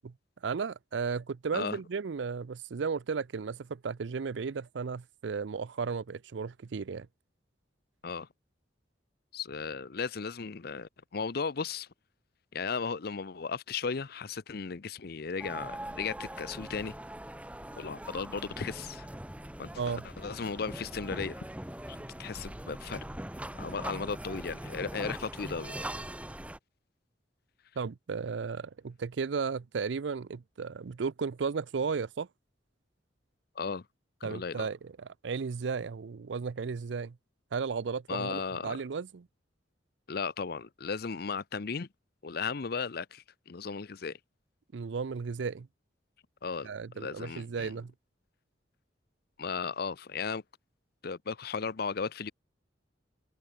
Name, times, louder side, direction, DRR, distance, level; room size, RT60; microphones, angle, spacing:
voice 1, 0.4-7.1 19.8-20.0 27.8-32.3 34.2-37.2 37.5-39.3 44.7-45.7 46.6-47.9, right 5 dB, 75° right, 0.5 m, -34 dB
voice 2, 9.3-11.9 12.5-17.0 17.8-19.1 19.6-21.4 21.9-23.0 23.5-25.8 33.6-33.8 34.2-34.7 38.1-38.8 40.1-41.9 42.2-44.2 46.4-47.7 49.4-50.4 51.0-52.3, left 5 dB, 55° left, 0.6 m, -36 dB
sound 1, 15.4-26.6, right 1 dB, 5° right, 1.2 m, -41 dB
head